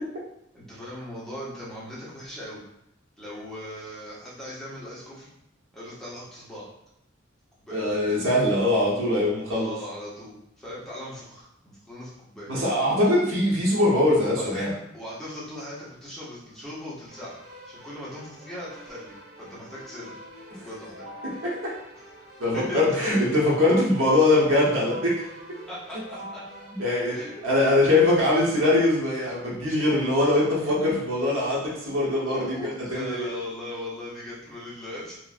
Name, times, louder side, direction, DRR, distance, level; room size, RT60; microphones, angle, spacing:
voice 1, 0.5-2.6 3.2-5.3 5.7-6.7 7.6-7.8 9.5-12.5 14.2-17.4 17.7-20.2 20.5-21.2 22.5-23.2 25.7-26.4 27.0-27.3 32.3-35.2, left 1 dB, ahead, -8 dB, 0.9 m, -39 dB
voice 2, 7.7-9.7 12.5-14.7 21.2-21.7 22.4-25.2 26.8-33.3, left 1 dB, 90° right, -5 dB, 1.0 m, -22 dB
Keyboard (musical), 17.1-27.7, equal, 50° right, 1.3 m, -45 dB
3.0 x 2.5 x 2.4 m, 0.78 s
head